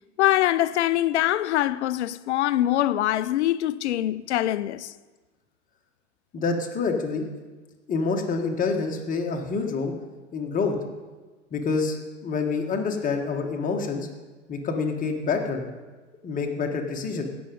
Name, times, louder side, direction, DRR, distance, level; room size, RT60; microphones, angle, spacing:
voice 1, 0.2-4.9, left 13 dB, 60° left, 0.6 m, -23 dB
voice 2, 6.3-7.3 7.9-9.9 10.3-10.8 11.5-12.0 12.2-14.1 14.5-15.6 16.2-17.2, left 4 dB, 20° left, 1.5 m, -27 dB
16.5 x 6.1 x 5.3 m
figure-of-eight pair, 100°, 38 cm